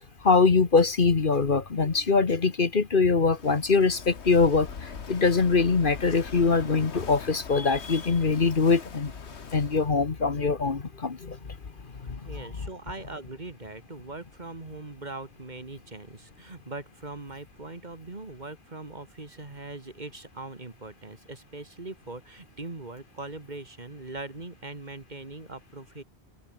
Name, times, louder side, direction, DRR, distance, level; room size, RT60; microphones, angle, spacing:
voice 1, 0.2-9.1 9.5-11.4 12.0-12.2, left 4 dB, 50° left, 1.5 m, -23 dB
Walk footsteps / Wind / Waves surf, 3.3-9.9, left 6 dB, 85° left, 1.7 m, -42 dB
voice 2, 12.2-26.0, right 2 dB, 40° right, 2.4 m, -41 dB
omnidirectional pair, 1.1 m